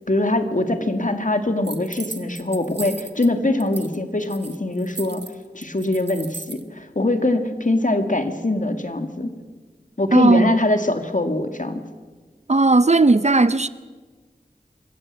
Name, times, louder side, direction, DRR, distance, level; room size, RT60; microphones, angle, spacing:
voice 1, 0.1-5.2 5.5-9.3 10.0-11.8, left 2 dB, 50° left, 1.9 m, -23 dB
sound 1, 1.6-3.3 3.6-6.6, right 3 dB, 85° right, 1.2 m, -37 dB
voice 2, 10.1-10.5 12.5-13.7, right 3 dB, 40° right, 0.6 m, -16 dB
25.0 x 14.5 x 7.4 m
wide cardioid pair, 50°, 17 cm